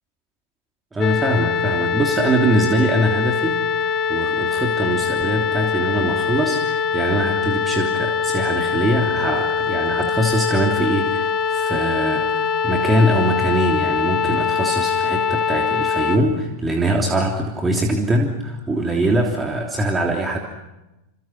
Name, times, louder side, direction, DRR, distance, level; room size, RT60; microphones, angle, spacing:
voice 1, 0.9-20.4, right 1 dB, 10° right, 1 dB, 3.2 m, -22 dB
sound 1, 1.0-16.2, left 6 dB, 30° left, 2.0 m, -22 dB
29.5 x 27.0 x 6.1 m, 0.97 s
figure-of-eight pair, 90°, 0 cm